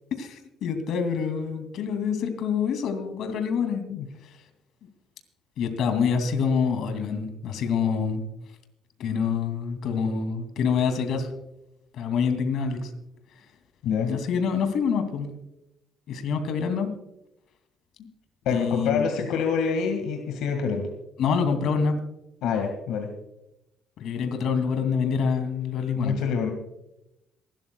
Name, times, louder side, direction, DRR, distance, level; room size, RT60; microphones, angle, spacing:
voice 1, 0.2-3.8 4.2-4.4 5.6-8.2 9.0-11.3 11.9-12.9 13.9-15.3 16.1-16.9 18.5-19.0 21.2-22.0 24.0-26.2, left 6 dB, 65° left, 7 dB, 2.6 m, -26 dB
voice 2, 18.5-20.9 22.4-23.1 25.9-26.5, left 6 dB, 80° left, 4 dB, 1.9 m, -26 dB
27.0 x 12.5 x 2.3 m, 0.88 s
cardioid pair, 135°, 0 cm